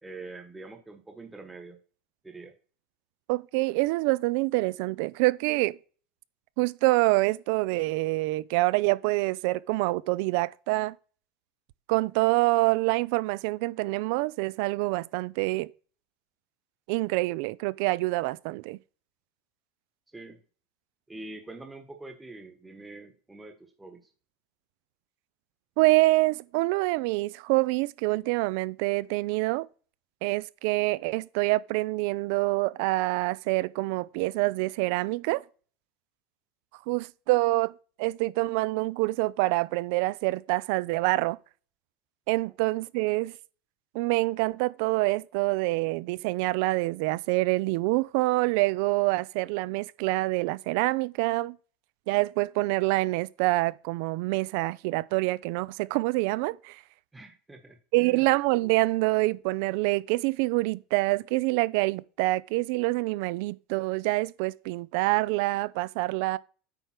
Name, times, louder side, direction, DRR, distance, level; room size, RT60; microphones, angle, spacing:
voice 1, 0.0-1.8 2.2-2.5 20.1-20.4 21.1-24.0 57.1-58.3, right 2 dB, 10° right, 1.1 m, -45 dB
voice 2, 3.3-5.8 6.6-10.9 11.9-15.7 16.9-18.8 25.8-29.7 30.2-35.4 36.9-41.4 42.3-43.3 43.9-51.6 52.1-56.8 57.9-66.4, right 21 dB, 70° right, 0.4 m, -26 dB
8.9 x 3.4 x 5.8 m
supercardioid pair, 110°, 0 cm